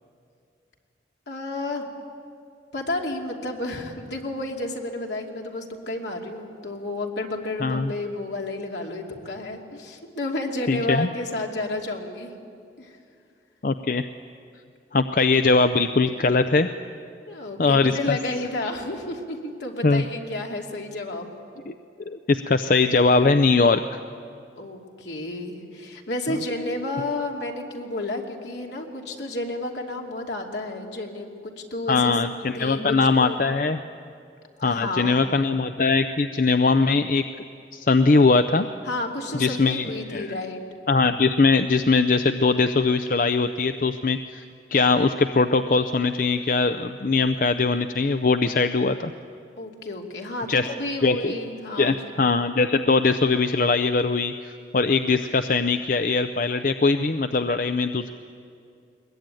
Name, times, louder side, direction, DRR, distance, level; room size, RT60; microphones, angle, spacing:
voice 1, 1.3-1.9 2.7-12.3 12.8-13.0 17.3-21.3 24.6-33.4 34.6-35.3 38.8-40.6 49.6-52.1, left 2 dB, 75° left, 1 dB, 2.8 m, -31 dB
voice 2, 7.6-7.9 10.7-11.1 13.6-14.1 14.9-16.7 17.6-18.2 19.8-20.0 21.7-21.8 22.1-24.0 31.9-33.8 34.6-37.2 37.7-38.7 39.4-39.9 40.1-40.3 40.9-44.4 44.7-49.1 50.5-50.7 51.0-51.3 51.8-58.1, left 3 dB, 50° left, 9 dB, 0.5 m, -21 dB
22.0 x 21.0 x 9.1 m, 2.4 s
head